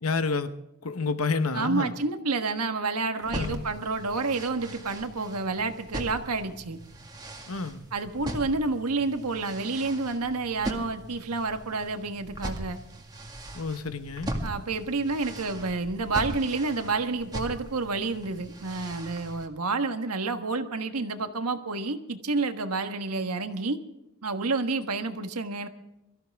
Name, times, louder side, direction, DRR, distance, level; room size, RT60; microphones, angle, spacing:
voice 1, 0.0-0.5 0.8-2.0 3.3-3.6 7.5-7.9 13.5-14.3, left 4 dB, 70° left, 10 dB, 1.0 m, -29 dB
voice 2, 1.5-6.8 7.9-12.8 14.4-23.8 24.2-25.7, right 3 dB, 85° right, 7 dB, 1.4 m, -29 dB
sound 1, 3.2-19.5, right 1 dB, 20° right, 2.0 m, -40 dB
23.5 x 14.5 x 3.5 m, 0.88 s
head